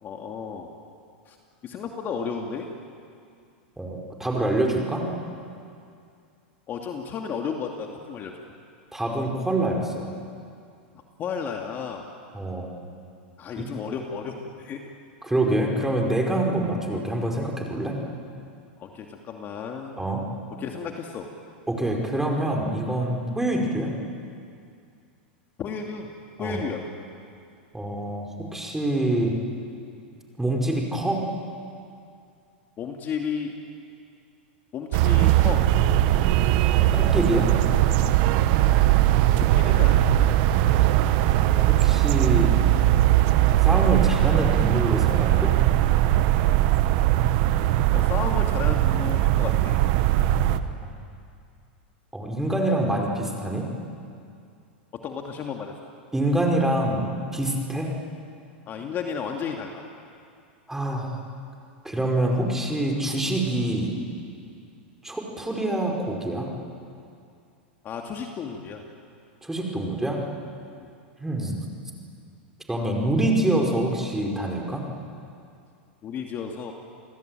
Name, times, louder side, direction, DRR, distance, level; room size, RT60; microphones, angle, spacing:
voice 1, 0.0-0.7 1.3-1.4 1.6-2.7 4.2-4.6 6.7-8.3 11.2-12.1 13.4-14.9 18.8-20.0 20.6-21.3 25.6-26.1 26.4-26.9 32.8-33.5 34.7-35.7 39.5-40.2 47.9-49.7 54.9-55.7 58.7-59.8 67.8-68.8 70.8-70.9 76.0-76.7, left 6 dB, 35° left, 2 dB, 2.5 m, -33 dB
voice 2, 3.8-5.1 8.9-10.1 12.3-12.7 13.6-13.7 15.2-18.0 20.0-20.2 21.7-23.9 26.4-26.6 27.7-29.4 30.4-31.2 36.6-37.5 41.4-42.6 43.6-45.5 50.8-50.9 52.1-53.7 56.1-57.9 60.7-61.2 61.8-63.9 65.0-66.5 69.4-70.2 71.2-71.6 72.7-74.9, right 1 dB, 5° right, 0 dB, 5.2 m, -26 dB
sound 1, 34.9-50.6, right 13 dB, 55° right, 1.3 m, -20 dB
29.0 x 19.5 x 9.2 m, 2.4 s
hypercardioid pair, 105°, 6 cm